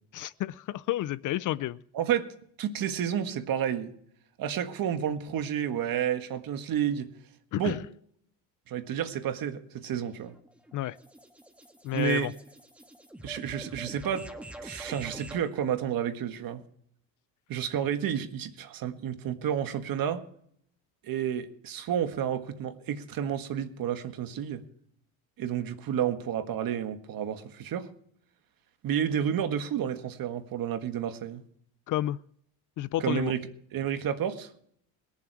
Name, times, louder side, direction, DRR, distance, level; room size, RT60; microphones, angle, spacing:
voice 1, 0.1-1.8 7.5-7.8 10.7-11.0 11.8-12.3 31.9-32.2 32.8-33.3, left 14 dB, 50° left, 0.4 m, -30 dB
voice 2, 1.9-2.3 2.6-3.9 4.4-7.1 7.6-7.8 8.7-10.3 11.9-12.3 13.2-14.3 14.6-16.6 17.5-20.2 21.0-24.6 25.4-27.9 28.8-31.4 33.0-34.5, right 9 dB, 50° right, 1.6 m, -30 dB
sound 1, 10.0-15.5, right 1 dB, 5° right, 1.5 m, -45 dB
21.5 x 7.3 x 4.7 m
cardioid pair, 115°, 43 cm